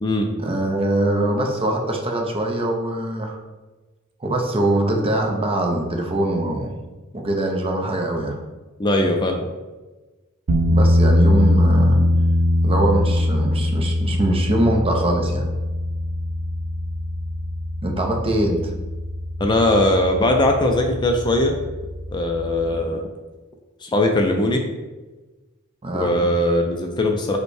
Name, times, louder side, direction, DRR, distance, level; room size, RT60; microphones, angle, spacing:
voice 1, 0.4-3.4 4.2-6.7 7.1-8.4 10.7-12.0 12.6-15.4 17.8-18.6 25.8-26.1, right 1 dB, 25° right, 1 dB, 0.6 m, -22 dB
voice 2, 8.8-9.4 19.4-21.6 22.1-23.1 23.8-24.6 25.9-27.4, left 1 dB, 20° left, 3 dB, 0.4 m, -20 dB
sound 1, 10.5-22.8, left 1 dB, 65° right, 0.5 m, -22 dB
5.2 x 2.2 x 4.7 m, 1.2 s
head